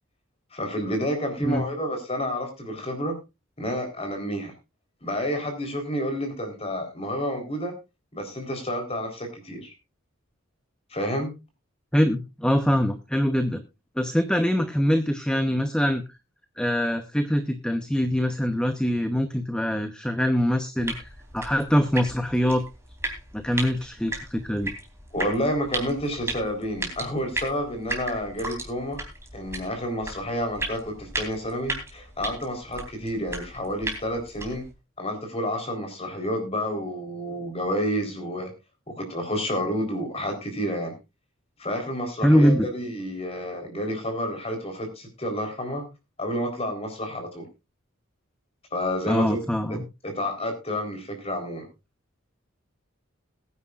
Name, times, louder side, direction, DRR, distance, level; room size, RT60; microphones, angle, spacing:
voice 1, 0.5-3.2 3.6-4.5 5.0-7.7 8.1-9.7 10.9-11.3 25.1-29.0 29.3-34.7 35.0-38.5 38.9-40.9 41.6-45.8 46.2-47.5 48.7-49.4 49.7-49.8 50.0-51.7, equal, 30° left, 4 dB, 3.9 m, -29 dB
voice 2, 11.9-13.6 14.0-16.0 16.6-21.1 21.3-22.6 23.3-24.7 42.2-42.7 49.1-49.8, equal, 5° left, 8 dB, 0.8 m, -23 dB
sound 1, 20.8-34.7, right 2 dB, 15° right, 3.5 m, -36 dB
21.0 x 9.7 x 2.4 m, 0.25 s
head